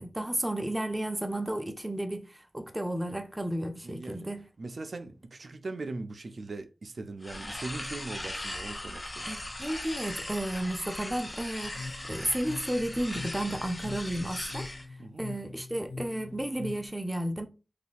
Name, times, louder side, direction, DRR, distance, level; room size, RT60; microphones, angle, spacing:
voice 1, 0.0-4.5 9.2-14.7 15.2-17.5, right 1 dB, 15° right, 0.6 m, -33 dB
voice 2, 3.8-4.3 4.6-9.3 15.0-15.3, right 3 dB, 70° right, 0.4 m, -40 dB
sound 1, 7.2-14.9, left 1 dB, 35° left, 0.6 m, -39 dB
sound 2, 11.6-16.9, left 3 dB, 75° left, 0.4 m, -43 dB
2.7 x 2.3 x 4.1 m
cardioid pair, 45°, 0 cm